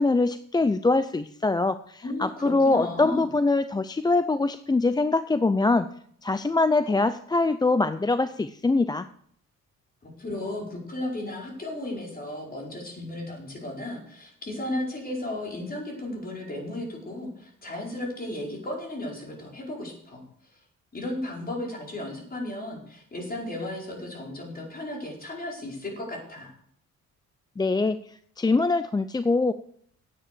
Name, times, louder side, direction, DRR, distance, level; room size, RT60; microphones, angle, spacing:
voice 1, 0.0-5.9 6.2-9.1 27.6-28.0 28.4-29.5, left 3 dB, 15° left, 12 dB, 0.5 m, -23 dB
voice 2, 2.0-3.3 10.0-20.2 20.5-20.6 20.9-26.5, left 1 dB, 30° left, -1 dB, 4.8 m, -34 dB
10.0 x 8.8 x 6.8 m, 0.64 s
cardioid pair, 90°, 30 cm